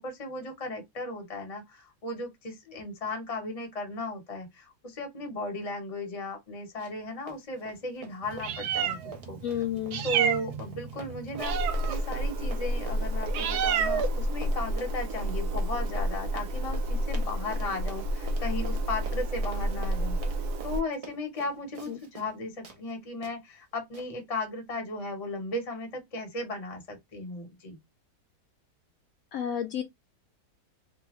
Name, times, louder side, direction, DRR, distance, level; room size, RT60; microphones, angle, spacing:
voice 1, 0.0-9.4 10.0-20.2 20.6-27.8, left 2 dB, 30° left, 0.8 m, -36 dB
Run, 6.8-7.0 7.3-22.4 22.6-22.8 23.2-23.3 23.9-24.1, right 3 dB, 60° right, 0.3 m, -47 dB
Meow, 8.2-20.8, right 2 dB, 75° right, 1.2 m, -30 dB
voice 2, 9.4-10.0 21.9-22.0 29.3-29.8, left 10 dB, 70° left, 0.9 m, -31 dB
3.3 x 2.3 x 3.0 m
omnidirectional pair, 1.7 m